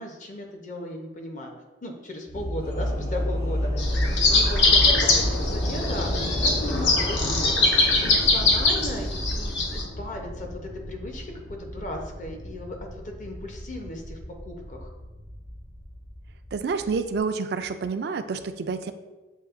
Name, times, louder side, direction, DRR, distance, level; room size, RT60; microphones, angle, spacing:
voice 1, 0.0-1.5 1.8-3.9 4.3-7.5 8.0-10.5 10.9-12.8 13.0-14.2 14.5-14.9, left 1 dB, 45° left, 2 dB, 0.7 m, -36 dB
sound 1, 2.3-17.2, left 1 dB, 65° left, 1.0 m, -31 dB
sound 2, 3.8-9.8, left 3 dB, 80° left, 0.7 m, -22 dB
voice 2, 16.5-18.9, right 5 dB, 60° right, 10 dB, 0.3 m, -28 dB
7.5 x 2.7 x 2.5 m, 1.1 s
head